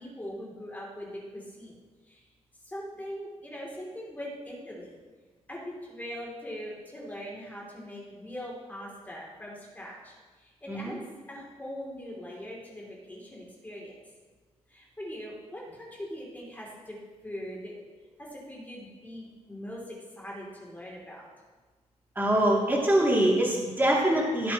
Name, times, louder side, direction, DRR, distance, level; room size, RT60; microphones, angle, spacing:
voice 1, 0.0-1.7 2.1-2.2 2.6-5.0 5.5-11.0 11.3-13.9 14.7-17.0 17.2-17.7 18.2-21.3, equal, 15° left, -4 dB, 3.0 m, -41 dB
voice 2, 22.2-24.5, right 1 dB, 15° right, -4 dB, 2.8 m, -24 dB
15.5 x 8.8 x 3.1 m, 1.4 s
wide cardioid pair, 125°, 12 cm